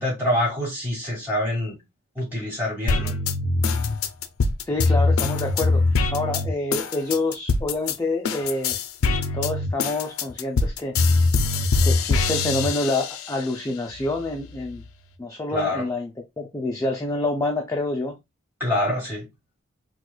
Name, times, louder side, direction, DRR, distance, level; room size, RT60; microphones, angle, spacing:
voice 1, 0.0-1.8 2.2-3.1 15.5-15.9 18.6-19.3, left 1 dB, 10° right, 2.3 m, -25 dB
sound 1, 2.9-8.0 8.2-13.4 13.9-14.9, left 3 dB, 80° left, 0.4 m, -23 dB
voice 2, 4.7-8.8 9.3-11.0 11.8-14.8 15.2-16.1 16.4-18.2, left 2 dB, 15° left, 0.4 m, -27 dB
4.6 x 2.2 x 2.2 m
head